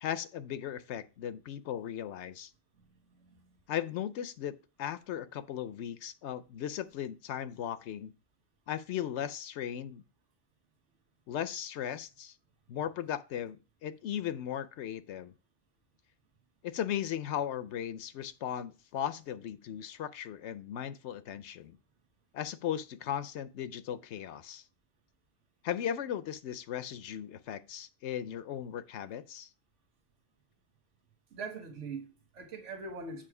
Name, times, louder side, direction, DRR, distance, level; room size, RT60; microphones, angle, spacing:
voice 1, 0.0-2.5 3.7-4.5 4.8-8.1 8.7-10.0 11.3-12.3 12.7-15.3 16.6-21.8 22.3-24.6 25.6-29.5, left 10 dB, 75° left, 0.9 m, -37 dB
voice 2, 31.3-33.3, right 4 dB, 85° right, 1.5 m, -42 dB
7.6 x 5.1 x 4.8 m
omnidirectional pair, 1.2 m